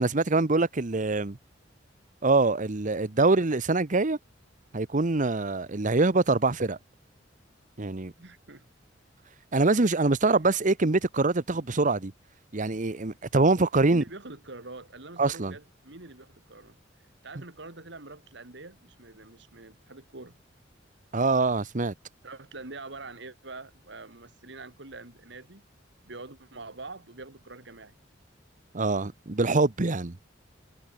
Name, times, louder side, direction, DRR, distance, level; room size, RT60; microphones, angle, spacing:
voice 1, 0.0-1.4 2.2-4.2 4.7-6.8 7.8-8.1 9.5-12.1 12.5-14.0 15.2-15.5 21.1-21.9 28.7-30.2, right 3 dB, 45° right, 1.0 m, -24 dB
voice 2, 8.2-8.6 10.2-10.5 13.8-16.8 17.2-20.4 22.2-25.6 26.0-28.0, right 3 dB, 65° right, 2.7 m, -45 dB
head